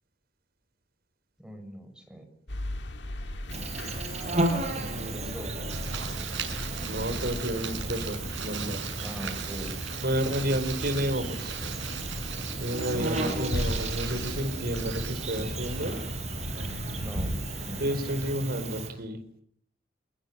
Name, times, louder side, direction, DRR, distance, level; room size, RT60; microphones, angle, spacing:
voice 1, 1.4-2.3 4.7-5.8 9.0-9.7 12.9-13.5 17.0-17.3 17.7-17.9, right 1 dB, 5° right, 5 dB, 6.7 m, -41 dB
sound 1, 2.5-18.3, left 1 dB, 70° left, 2.1 m, -39 dB
Insect, 3.5-18.9, right 2 dB, 40° right, 5.9 m, -34 dB
voice 2, 4.8-5.3 6.8-8.9 10.0-11.6 12.6-16.0 17.8-19.2, equal, 55° right, 9 dB, 4.8 m, -31 dB
sound 2, 5.7-17.4, right 4 dB, 85° right, 6.7 m, -39 dB
28.5 x 21.0 x 7.5 m, 0.64 s
head